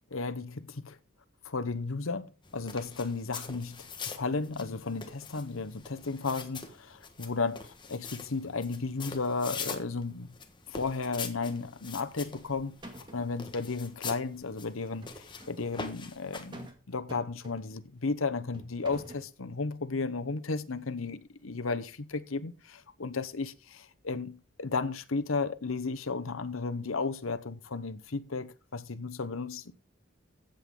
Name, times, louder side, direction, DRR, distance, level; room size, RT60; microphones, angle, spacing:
voice 1, 0.1-1.0 1.4-10.3 10.7-12.7 13.1-29.7, left 4 dB, 80° left, 1.0 m, -34 dB
sound 1, 2.4-16.7, left 5 dB, 20° left, 1.4 m, -44 dB
sound 2, 12.2-12.5 12.8-13.4 14.8-15.8 16.5-16.8 17.1-17.9 18.5-19.3, right 1 dB, 20° right, 2.2 m, -47 dB
15.5 x 7.9 x 3.8 m
head